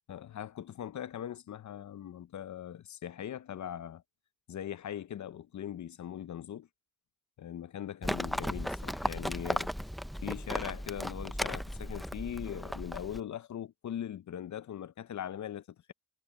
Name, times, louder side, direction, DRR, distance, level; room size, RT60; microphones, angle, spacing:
voice 1, 0.1-4.0 4.5-6.7 7.4-9.7 10.2-15.9, left 10 dB, 55° left, 0.9 m, -40 dB
Livestock farm animals working animals, 8.0-13.2, equal, ahead, 0.9 m, -36 dB
supercardioid pair, 55°, 36 cm